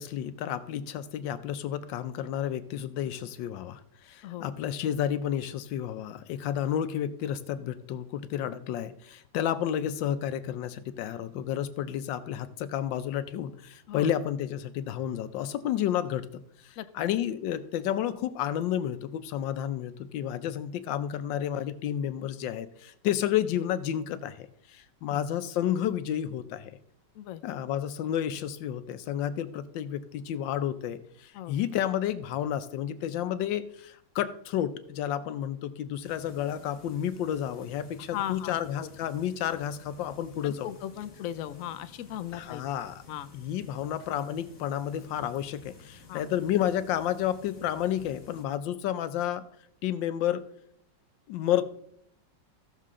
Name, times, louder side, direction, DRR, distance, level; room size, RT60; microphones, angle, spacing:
voice 1, 0.0-16.3 16.6-26.8 27.4-40.7 42.3-43.0 43.3-49.4 49.8-50.5 51.3-51.6, left 10 dB, 85° left, 12 dB, 1.4 m, -31 dB
voice 2, 16.8-17.1 25.1-25.2 27.1-27.4 31.3-31.6 38.1-38.9 40.4-42.6 43.1-43.3 46.1-46.2, left 12 dB, 70° left, 11 dB, 0.8 m, -37 dB
sound 1, 36.0-48.5, left 3 dB, 50° left, 2.0 m, -53 dB
15.0 x 6.6 x 3.7 m, 0.68 s
omnidirectional pair, 2.0 m